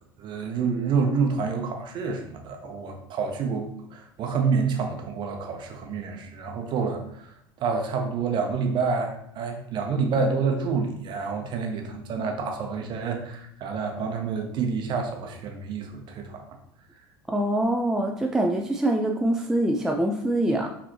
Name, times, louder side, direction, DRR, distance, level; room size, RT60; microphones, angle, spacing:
voice 1, 0.2-16.6, right 5 dB, 40° right, 3 dB, 0.8 m, -28 dB
voice 2, 17.3-20.7, right 1 dB, 5° right, 2 dB, 0.4 m, -24 dB
4.7 x 3.4 x 3.0 m, 0.70 s
figure-of-eight pair, 70°, 12 cm